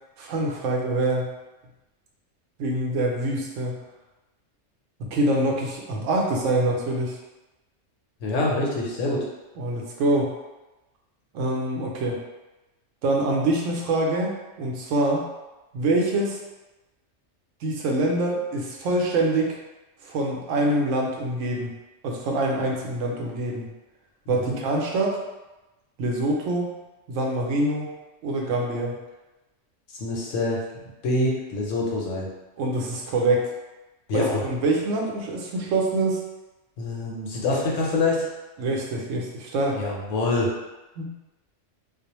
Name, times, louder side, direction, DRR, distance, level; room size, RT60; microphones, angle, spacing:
voice 1, 0.2-1.3 2.6-3.8 5.0-7.2 9.6-10.3 11.3-12.2 13.0-15.2 15.7-16.4 17.6-19.6 20.0-21.7 22.0-23.7 24.3-25.2 26.0-26.7 27.1-27.9 28.2-29.0 32.6-33.5 34.1-36.2 38.6-39.8 41.0-41.1, right 2 dB, 90° right, -1 dB, 0.9 m, -25 dB
voice 2, 8.2-9.2 24.3-24.6 30.0-32.3 34.1-34.4 36.8-38.3 39.7-40.5, left 2 dB, 90° left, -3 dB, 1.0 m, -25 dB
2.4 x 2.1 x 2.9 m, 1.1 s
omnidirectional pair, 1.2 m